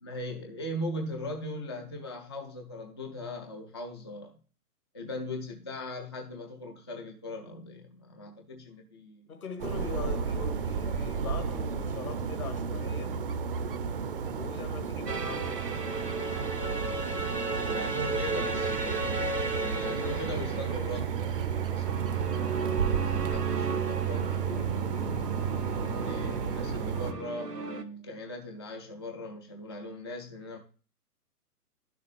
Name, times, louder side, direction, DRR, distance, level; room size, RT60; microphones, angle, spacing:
voice 1, 0.0-4.4 4.9-9.3 17.6-22.7 23.3-24.8 25.7-30.6, left 1 dB, 20° left, 0.4 m, -40 dB
voice 2, 9.3-13.2 14.2-15.6, left 6 dB, 65° left, 1.9 m, -41 dB
sound 1, 9.6-27.1, right 7 dB, 35° right, 0.6 m, -32 dB
sound 2, 15.1-27.8, right 3 dB, 90° right, 1.1 m, -35 dB
11.0 x 6.8 x 3.1 m
figure-of-eight pair, 125°, 47 cm